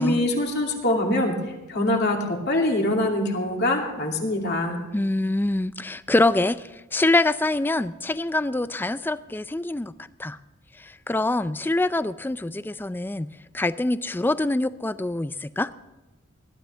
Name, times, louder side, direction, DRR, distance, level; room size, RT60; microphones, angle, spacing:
voice 1, 0.0-1.4 1.7-4.8, left 1 dB, 50° left, 0 dB, 2.6 m, -24 dB
voice 2, 4.9-9.9 10.2-10.4 10.8-15.7, left 2 dB, 10° left, 14 dB, 0.3 m, -25 dB
20.0 x 12.5 x 3.4 m, 1.1 s
head